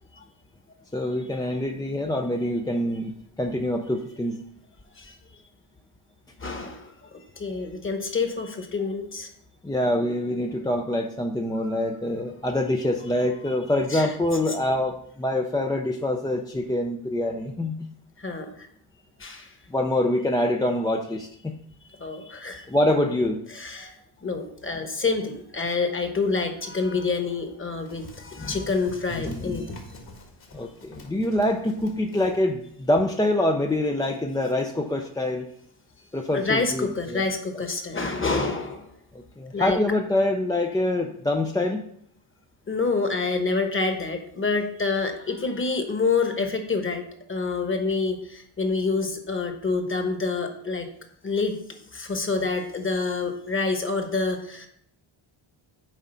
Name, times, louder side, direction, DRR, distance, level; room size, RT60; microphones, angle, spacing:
voice 1, 0.9-3.1 3.4-4.4 9.6-17.8 19.7-21.5 22.7-23.4 28.4-28.6 29.1-29.7 30.5-35.5 36.1-37.2 39.1-41.9, left 1 dB, 10° left, 3 dB, 0.4 m, -25 dB
voice 2, 6.4-9.3 13.9-14.1 18.2-18.7 19.2-19.5 22.0-22.7 23.5-23.9 24.2-29.7 36.3-38.9 39.5-39.8 42.7-50.9 51.2-51.6 51.9-54.7, left 4 dB, 25° left, 5 dB, 1.2 m, -27 dB
Run, 27.8-32.5, left 3 dB, 45° left, 1.8 m, -46 dB
7.6 x 4.8 x 5.5 m, 0.68 s
cardioid pair, 125°, 50 cm